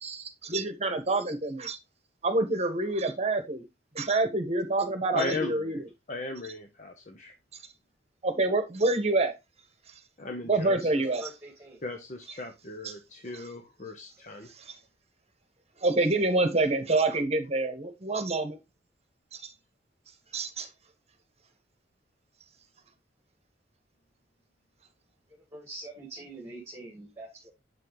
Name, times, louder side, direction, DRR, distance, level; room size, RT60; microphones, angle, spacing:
voice 1, 0.0-1.8 2.2-3.6 3.9-5.8 8.2-9.3 10.5-11.3 14.7-14.8 15.8-18.6 19.3-19.4 20.3-20.7, right 2 dB, 35° right, 1.3 m, -27 dB
voice 2, 5.1-5.8 6.1-7.3 10.2-11.1 11.8-14.5, left 3 dB, 45° left, 1.0 m, -37 dB
voice 3, 11.2-11.8 25.5-27.5, right 2 dB, 15° right, 2.3 m, -44 dB
7.5 x 5.7 x 3.2 m
head